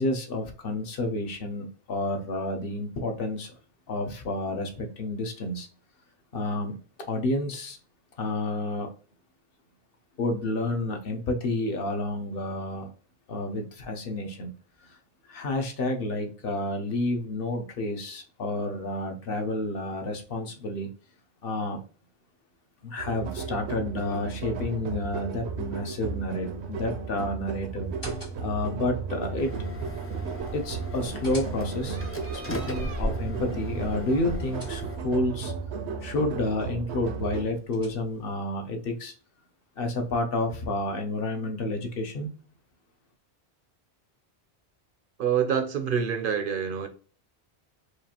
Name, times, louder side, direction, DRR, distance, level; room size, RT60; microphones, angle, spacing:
voice 1, 0.0-3.5 3.9-5.7 6.3-6.8 7.1-7.8 8.2-8.9 10.2-12.9 13.3-14.5 14.8-15.0 15.3-20.9 21.4-21.8 22.8-27.9 28.4-29.5 30.5-32.0 32.3-35.5 36.0-39.1 39.8-42.3, left 2 dB, 65° left, 0.9 m, -30 dB
sound 1, 23.0-37.4, right 5 dB, 85° right, 0.9 m, -34 dB
sound 2, 27.8-28.7 30.7-32.0 34.0-35.2 37.2-38.3, left 1 dB, 90° left, 2.2 m, -46 dB
sound 3, 29.4-35.0, left 1 dB, 25° left, 0.3 m, -37 dB
voice 2, 45.2-46.9, right 7 dB, 60° right, 0.6 m, -26 dB
4.7 x 2.4 x 2.8 m
omnidirectional pair, 1.1 m